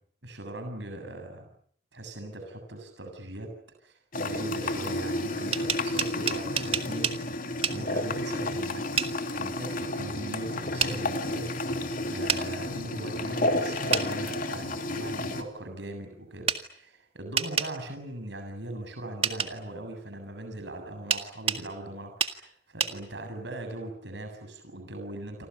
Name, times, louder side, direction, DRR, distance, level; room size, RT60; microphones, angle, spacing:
voice 1, 0.2-1.5 1.9-3.5 3.8-8.9 9.3-11.5 12.1-25.5, right 1 dB, 75° right, 5 dB, 7.5 m, -40 dB
sound 1, 4.1-15.4, left 1 dB, 50° left, 2.9 m, -31 dB
sound 2, 5.3-7.2 7.6-7.8 9.0-9.1 10.8-10.9 12.3-12.4 13.9-14.1 16.5-16.6 17.4-17.7 19.2-19.5 21.1-21.6 22.2-22.4 22.8-22.9, right 7 dB, 30° right, 2.0 m, -27 dB
29.0 x 26.0 x 6.9 m, 0.63 s
head